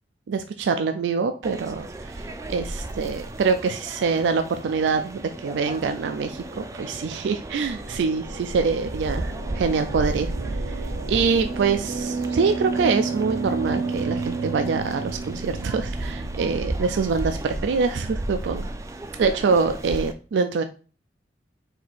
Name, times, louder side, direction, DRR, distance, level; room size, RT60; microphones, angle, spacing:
voice 1, 0.3-1.9 2.5-10.3 11.1-18.7 19.2-20.6, right 5 dB, 90° right, 8 dB, 0.4 m, -24 dB
sound 1, 1.4-20.1, right 1 dB, 20° right, 0.4 m, -34 dB
sound 2, 5.2-17.1, right 4 dB, 70° right, 0.7 m, -33 dB
4.5 x 2.8 x 4.1 m, 0.37 s
head